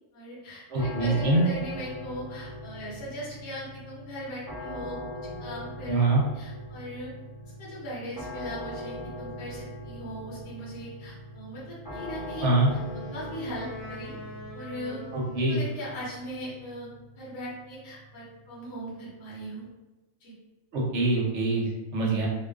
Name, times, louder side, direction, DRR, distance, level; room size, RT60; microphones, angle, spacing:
voice 1, 0.1-5.0 5.4-6.1 6.3-7.1 7.6-12.8 13.1-14.1 14.5-15.0 15.5-16.9 17.1-19.7 20.2-20.3, equal, 55° left, -7 dB, 1.0 m, -39 dB
voice 2, 0.7-1.5 5.9-6.2 12.4-12.7 15.1-15.6 20.7-22.3, right 2 dB, 65° right, -3 dB, 0.8 m, -24 dB
sound 1, 0.8-19.7, left 1 dB, 30° left, 0.7 m, -41 dB
Wind instrument woodwind instrument, 11.9-16.1, left 1 dB, 90° left, 1.0 m, -44 dB
2.4 x 2.2 x 2.3 m, 1.1 s
omnidirectional pair, 1.4 m